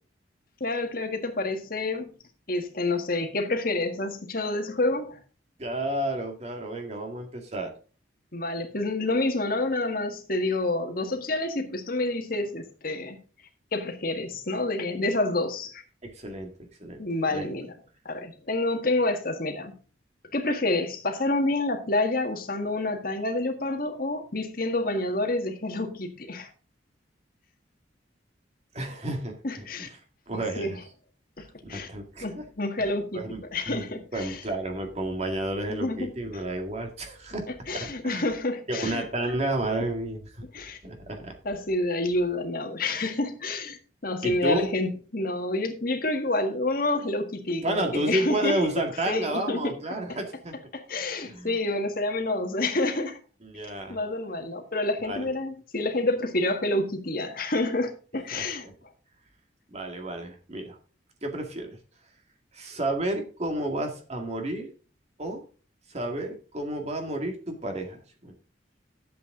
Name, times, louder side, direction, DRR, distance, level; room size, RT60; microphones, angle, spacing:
voice 1, 0.6-2.1 2.5-5.2 8.3-13.2 13.7-15.8 17.0-17.7 18.1-19.7 20.3-26.5 29.4-29.9 30.6-30.7 31.4-31.9 32.2-33.2 33.5-34.4 35.7-36.1 37.7-39.1 40.5-40.8 41.5-48.6 49.1-49.7 50.1-50.2 50.7-53.2 53.9-58.7, left 2 dB, 50° left, 1.8 m, -28 dB
voice 2, 5.6-7.7 16.0-16.5 16.8-17.0 17.3-17.5 28.7-29.9 30.3-30.8 31.6-32.4 32.8-33.4 33.7-37.5 37.8-38.3 38.7-40.5 40.8-41.4 44.2-44.7 47.6-50.6 51.1-51.5 53.4-54.0 55.0-55.3 58.3-58.7 59.7-60.8 61.2-61.8 62.5-64.7 65.2-65.4 65.9-68.3, right 1 dB, 35° right, 2.1 m, -31 dB
11.5 x 8.1 x 3.8 m
head